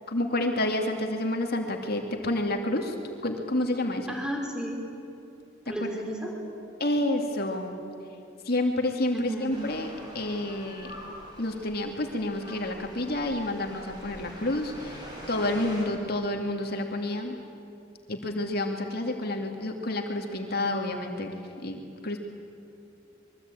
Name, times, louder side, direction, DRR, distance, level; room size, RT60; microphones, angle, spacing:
voice 1, 0.1-3.0 3.2-4.2 6.8-7.8 8.5-10.9 11.4-17.4 18.1-21.3 21.6-22.2, left 1 dB, 55° left, 3 dB, 2.3 m, -29 dB
voice 2, 4.1-4.8 5.7-6.3 9.1-9.6, right 1 dB, 5° right, 0 dB, 4.0 m, -33 dB
sound 1, 9.5-15.9, equal, 25° right, 6.5 m, -44 dB
26.0 x 23.0 x 9.0 m, 2.7 s
head